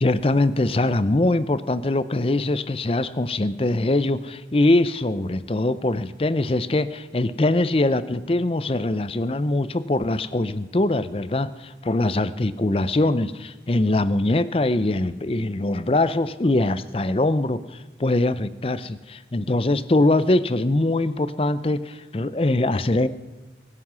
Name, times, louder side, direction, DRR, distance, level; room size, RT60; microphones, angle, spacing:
voice 1, 0.0-23.1, left 2 dB, 30° left, 15 dB, 0.6 m, -22 dB
22.0 x 9.9 x 6.1 m, 1.1 s
head